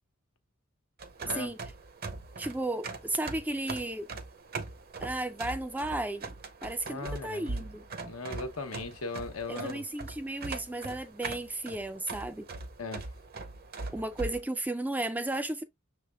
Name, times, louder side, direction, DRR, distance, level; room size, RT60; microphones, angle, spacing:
sound 1, 1.0-14.4, right 3 dB, 45° right, 0.7 m, -41 dB
voice 1, 1.3-1.6 2.4-4.1 5.0-6.3 6.6-7.9 9.5-12.5 13.9-15.6, right 2 dB, 10° right, 0.4 m, -34 dB
voice 2, 6.8-7.7 8.0-9.8 12.8-13.1, left 3 dB, 85° left, 1.0 m, -38 dB
6.3 x 3.4 x 2.2 m
head